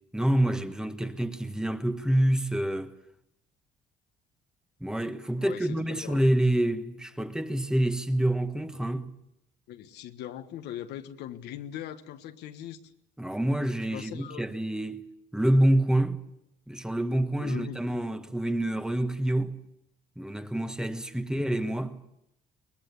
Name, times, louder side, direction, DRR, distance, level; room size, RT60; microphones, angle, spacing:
voice 1, 0.1-2.9 4.8-9.1 13.2-16.2 16.7-19.6 20.2-22.0, right 1 dB, 5° right, 1.4 m, -27 dB
voice 2, 5.4-6.2 9.7-12.8 13.9-14.4 17.4-17.8, left 11 dB, 80° left, 1.4 m, -40 dB
23.5 x 20.5 x 8.2 m
cardioid pair, 110°, 17 cm